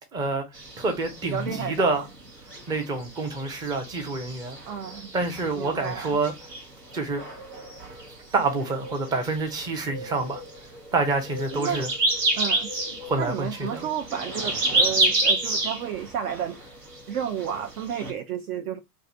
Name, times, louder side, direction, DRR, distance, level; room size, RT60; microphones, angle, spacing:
voice 1, 0.1-0.4 0.8-2.0 2.7-4.6 5.1-6.3 6.9-7.2 8.3-10.4 10.9-11.9 13.0-13.9, right 3 dB, 10° right, 0.3 m, -27 dB
sound 1, 0.5-18.1, right 2 dB, 90° right, 0.9 m, -30 dB
voice 2, 1.3-2.1 4.7-5.1 5.6-6.2 11.5-11.9 12.4-12.7 13.2-16.6 17.1-18.8, right 9 dB, 65° right, 0.5 m, -31 dB
2.6 x 2.3 x 4.0 m
figure-of-eight pair, 85°, 48 cm